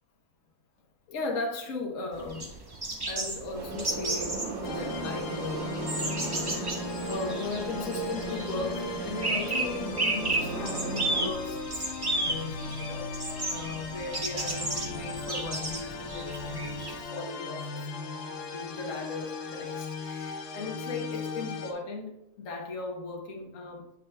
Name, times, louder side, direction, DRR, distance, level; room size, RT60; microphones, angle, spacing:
voice 1, 1.1-2.6 3.1-6.7 7.1-11.9 12.2-13.1 13.5-17.8 18.5-23.9, left 3 dB, 55° left, 0 dB, 1.3 m, -37 dB
sound 1, 2.1-17.0, right 2 dB, 35° right, 0.4 m, -34 dB
sound 2, 3.5-11.3, right 4 dB, 55° right, 1.0 m, -36 dB
sound 3, 4.6-21.7, left 4 dB, 90° left, 1.4 m, -38 dB
8.2 x 5.4 x 2.2 m, 0.85 s
omnidirectional pair, 1.7 m